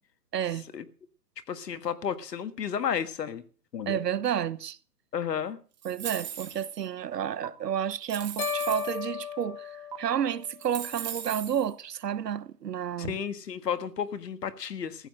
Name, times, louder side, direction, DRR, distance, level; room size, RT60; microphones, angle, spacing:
voice 1, 0.3-0.6 3.9-4.8 5.8-9.7 10.0-13.2, right 9 dB, 75° right, 1.1 m, -30 dB
voice 2, 1.5-3.4 3.7-4.0 5.1-5.6 13.0-15.1, left 8 dB, 75° left, 1.7 m, -32 dB
sound 1, 5.8-6.8 7.4-7.5 8.0-9.0 9.9-10.0 10.4-11.6, right 9 dB, 25° right, 1.8 m, -38 dB
sound 2, 8.4-10.7, left 7 dB, 55° left, 2.0 m, -35 dB
15.0 x 9.7 x 6.4 m
hypercardioid pair, 180°, 49 cm